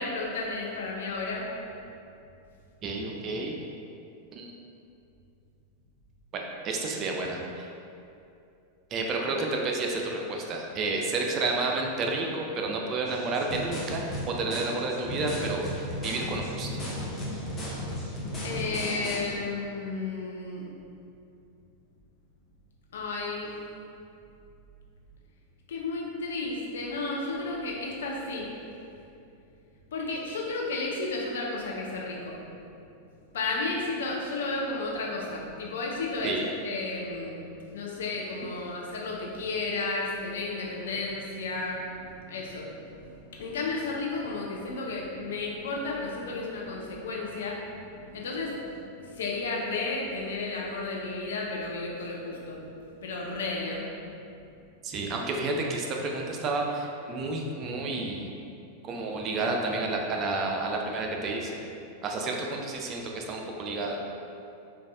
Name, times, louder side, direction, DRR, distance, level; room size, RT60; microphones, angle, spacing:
voice 1, 0.0-1.5 18.4-20.7 22.9-23.6 25.7-28.5 29.9-32.4 33.3-37.4 37.7-52.7 53.0-53.9, left 3 dB, 60° left, -2 dB, 0.5 m, -33 dB
voice 2, 2.8-3.6 4.3-4.5 6.3-7.7 8.9-16.8 36.2-36.5 54.8-58.3 58.8-61.6 62.0-64.0, right 3 dB, 35° right, 1 dB, 0.3 m, -30 dB
sound 1, 13.0-19.2, equal, 20° left, 0.6 m, -35 dB
3.9 x 2.3 x 2.3 m, 2.6 s
figure-of-eight pair, 90°, 0 cm